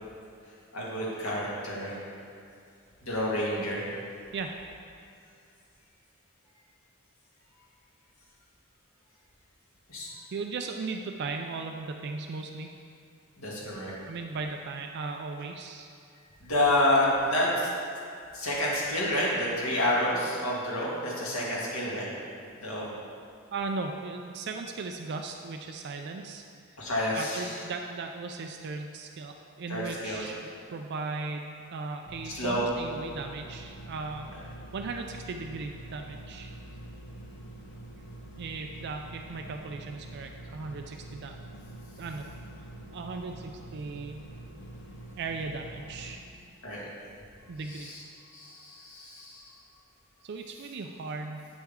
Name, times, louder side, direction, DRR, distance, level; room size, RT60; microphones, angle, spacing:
voice 1, 0.7-1.9 3.0-3.9 9.9-10.1 13.4-13.9 16.4-17.7 18.3-22.1 22.6-22.9 26.8-27.5 29.7-30.2 32.2-32.7 46.6-46.8 47.7-48.0 48.3-49.4, left 1 dB, 90° left, -5 dB, 1.9 m, -29 dB
voice 2, 10.3-12.7 14.1-15.9 23.5-26.4 27.1-34.3 34.7-36.5 38.4-41.4 42.0-42.3 42.9-44.2 45.2-46.2 47.5-47.9 50.2-51.5, right 4 dB, 50° right, 4 dB, 0.4 m, -37 dB
sound 1, 32.0-46.2, right 1 dB, 55° left, 0.8 m, -46 dB
8.5 x 6.2 x 3.6 m, 2.5 s
head